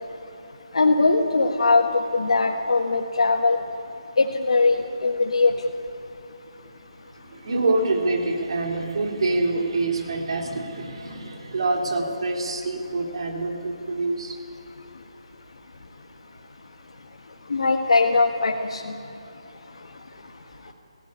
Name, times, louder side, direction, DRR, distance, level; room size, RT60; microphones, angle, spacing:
voice 1, 0.7-1.8 2.1-3.6 4.2-5.5 17.5-18.8, left 3 dB, 70° left, 2 dB, 1.6 m, -20 dB
voice 2, 7.3-14.4, right 2 dB, 60° right, 2 dB, 3.5 m, -26 dB
16.5 x 16.5 x 9.9 m, 2.8 s
figure-of-eight pair, 155°, 3 cm